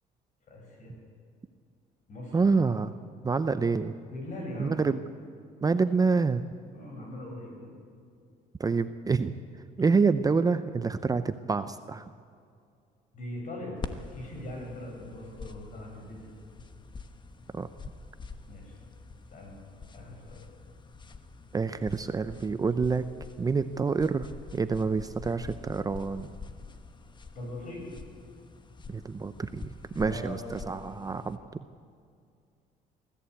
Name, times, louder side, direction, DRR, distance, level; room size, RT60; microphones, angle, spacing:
voice 1, 0.5-0.9 2.1-2.6 4.1-4.8 6.7-7.7 13.1-16.3 18.5-18.8 19.3-19.6 19.9-20.4 27.3-27.9 29.9-30.9, left 1 dB, 45° left, 0 dB, 7.9 m, -41 dB
voice 2, 2.3-2.9 3.2-3.9 4.6-5.0 5.6-6.4 8.6-9.3 9.8-12.1 17.5-17.7 21.5-23.1 23.4-26.3 28.9-31.6, right 4 dB, 20° right, 11 dB, 0.6 m, -27 dB
sound 1, 13.8-31.4, left 4 dB, 25° left, 1.2 m, -46 dB
23.5 x 14.5 x 8.4 m, 2.3 s
cardioid pair, 110°, 17 cm